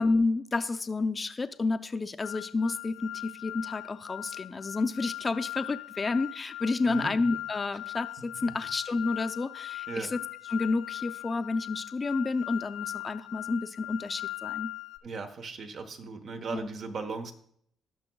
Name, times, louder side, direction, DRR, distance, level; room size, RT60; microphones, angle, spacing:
voice 1, 0.0-10.2 10.5-14.7 16.5-16.7, left 3 dB, 30° left, 9 dB, 0.5 m, -30 dB
sound 1, 2.2-15.0, left 16 dB, 90° left, 0.5 m, -40 dB
voice 2, 6.8-7.2 8.2-8.4 9.9-10.1 15.0-17.3, right 4 dB, 60° right, 6 dB, 1.1 m, -37 dB
17.0 x 6.2 x 2.3 m, 0.66 s
cardioid pair, 90°, 0 cm